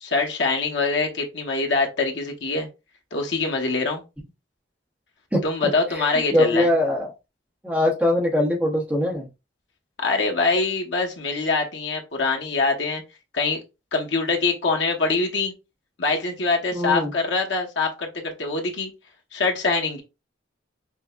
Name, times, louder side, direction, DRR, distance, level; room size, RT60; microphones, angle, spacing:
voice 1, 0.0-2.7 3.1-4.0 5.4-6.7 10.0-13.0 13.3-13.6 13.9-15.5 16.0-18.9 19.3-20.0, left 3 dB, 75° left, 1.0 m, -24 dB
voice 2, 5.9-7.1 7.6-9.3 16.7-17.1, left 1 dB, 10° right, 0.8 m, -22 dB
6.1 x 2.2 x 2.4 m
head